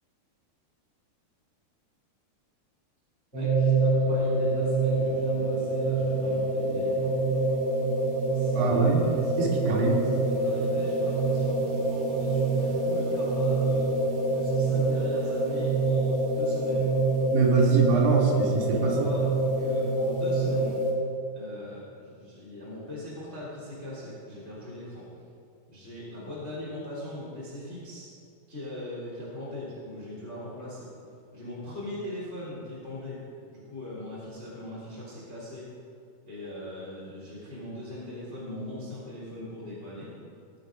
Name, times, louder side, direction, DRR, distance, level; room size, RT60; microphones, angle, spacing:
voice 1, 3.3-7.2 8.3-17.0 18.6-19.3 19.6-20.8 21.3-25.0 25.7-28.1 28.5-30.9 31.3-33.2 33.5-35.7 36.2-40.1, left 1 dB, 15° left, -7 dB, 3.1 m, -40 dB
sound 1, 3.3-20.9, right 2 dB, 40° right, 4.0 m, -26 dB
voice 2, 8.5-9.0 9.4-10.0 17.3-19.0, right 4 dB, 60° right, -2 dB, 4.1 m, -23 dB
21.0 x 9.2 x 5.2 m, 2.4 s
omnidirectional pair, 4.6 m